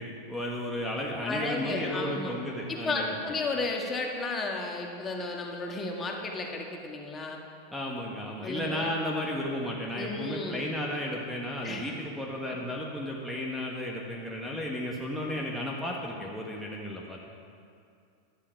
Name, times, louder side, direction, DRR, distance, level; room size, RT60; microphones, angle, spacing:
voice 1, 0.0-3.1 7.7-17.2, left 1 dB, ahead, -2 dB, 1.3 m, -33 dB
voice 2, 1.2-2.3 2.7-7.4 8.4-8.9 10.0-10.6 11.6-11.9 12.5-12.6, left 3 dB, 25° left, 0 dB, 1.5 m, -33 dB
11.0 x 9.7 x 4.6 m, 2.4 s
hypercardioid pair, 110°, 0 cm